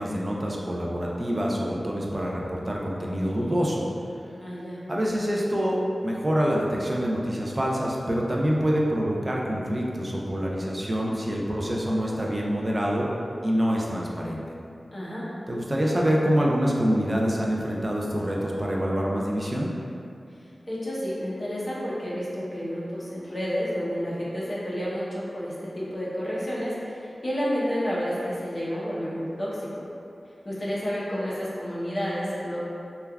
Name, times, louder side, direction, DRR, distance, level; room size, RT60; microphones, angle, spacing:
voice 1, 0.0-3.8 4.9-13.1 13.4-14.4 15.5-19.7, equal, 25° right, -3 dB, 0.4 m, -26 dB
voice 2, 4.4-4.8 14.9-15.3 20.7-29.9 30.4-32.6, equal, 35° left, -7 dB, 0.7 m, -30 dB
3.2 x 2.3 x 2.2 m, 2.6 s
wide cardioid pair, 90°, 0 cm